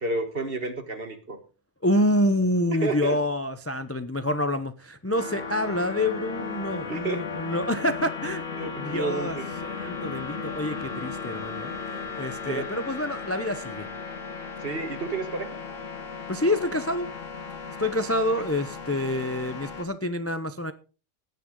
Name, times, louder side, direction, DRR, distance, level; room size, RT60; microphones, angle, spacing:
voice 1, 0.0-1.4 2.7-3.2 6.9-7.2 8.6-9.5 12.5-12.7 14.6-15.6, right 3 dB, 45° right, 8 dB, 1.8 m, -31 dB
voice 2, 1.8-8.4 8.8-11.7 12.2-13.9 16.3-17.1 17.8-20.7, left 1 dB, 15° left, 10 dB, 0.6 m, -27 dB
sound 1, 5.1-19.8, left 5 dB, 75° left, 2.1 m, -36 dB
17.5 x 9.3 x 3.8 m, 0.35 s
omnidirectional pair, 1.3 m